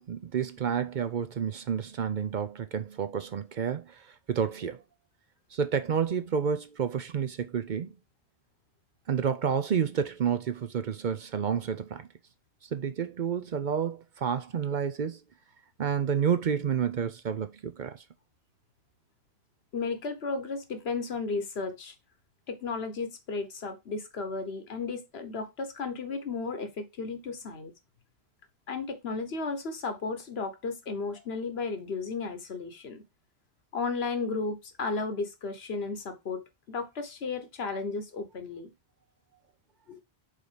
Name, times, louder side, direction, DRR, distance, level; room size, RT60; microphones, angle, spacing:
voice 1, 0.0-4.8 5.5-7.9 9.1-12.1 12.7-15.2 15.8-18.0, right 7 dB, 55° right, 0.7 m, -30 dB
voice 2, 19.7-21.9 22.5-27.7 28.7-33.0 33.7-38.7 39.9-40.0, left 4 dB, 80° left, 1.3 m, -34 dB
5.0 x 4.0 x 5.0 m
omnidirectional pair, 1.0 m